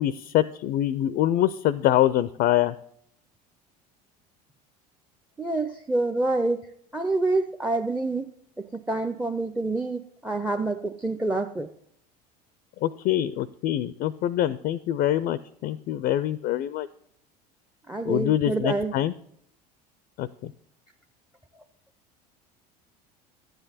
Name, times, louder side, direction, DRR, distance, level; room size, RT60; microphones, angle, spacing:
voice 1, 0.0-2.7 12.8-16.9 18.1-19.1 20.2-20.5, left 12 dB, 50° left, 16 dB, 0.4 m, -24 dB
voice 2, 5.4-6.6 6.9-8.3 8.7-11.7 17.9-19.0, right 2 dB, 5° right, 11 dB, 0.5 m, -27 dB
12.0 x 8.0 x 4.1 m, 0.70 s
hypercardioid pair, 75°, 21 cm